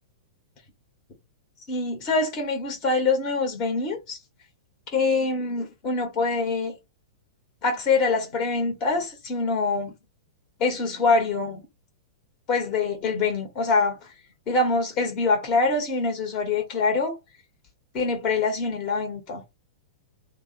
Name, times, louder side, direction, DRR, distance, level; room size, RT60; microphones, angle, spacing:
voice 1, 1.7-4.2 4.9-6.7 7.6-9.9 10.6-11.6 12.5-14.1 14.5-17.2 17.9-19.4, left 3 dB, 30° left, 1.0 m, -24 dB
3.1 x 2.1 x 2.7 m
figure-of-eight pair, 100°, 2 cm